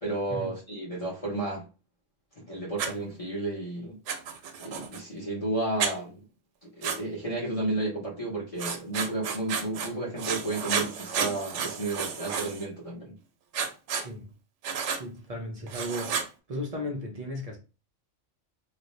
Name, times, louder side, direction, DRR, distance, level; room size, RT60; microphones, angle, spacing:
voice 1, 0.0-1.7 2.4-4.0 4.6-6.3 6.6-13.2, right 2 dB, 30° left, 0.9 m, -32 dB
Writing, 2.8-2.9 4.1-5.0 5.8-5.9 6.8-7.0 8.6-9.9 10.2-12.7 13.5-14.1 14.6-15.0 15.7-16.3, right 6 dB, 75° right, 0.9 m, -31 dB
voice 2, 13.9-14.3 14.9-16.2 16.5-17.6, left 1 dB, 45° right, 0.5 m, -35 dB
2.5 x 2.2 x 3.0 m
omnidirectional pair, 1.3 m